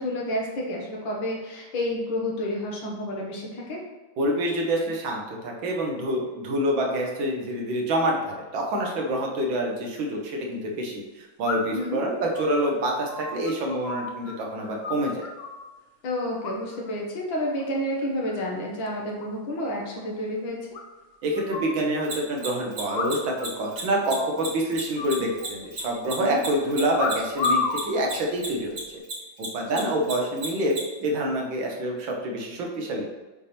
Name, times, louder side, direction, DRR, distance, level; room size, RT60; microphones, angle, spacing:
voice 1, 0.0-3.8 11.7-12.0 16.0-20.7 26.2-26.4 29.7-29.9, left 1 dB, 80° left, -2 dB, 2.1 m, -30 dB
voice 2, 4.2-15.2 21.2-28.8 29.4-33.1, right 1 dB, 80° right, 0 dB, 1.9 m, -27 dB
sound 1, 9.6-9.7 11.4-11.9 12.3-14.3 14.6-15.6 16.4-16.9 17.2-17.6 18.0-18.6 18.9-19.0 19.2-19.3 19.6-19.7 20.0-20.1 20.7-21.8 22.9-23.5 23.7-23.8 24.1-24.5 25.0-25.9 26.9-27.8 28.6-28.9, left 4 dB, 65° left, 0.6 m, -31 dB
Mechanisms, 22.0-28.8 29.0-30.8, right 4 dB, 65° right, 2.9 m, -33 dB
7.4 x 3.4 x 4.2 m, 1.2 s
omnidirectional pair, 2.1 m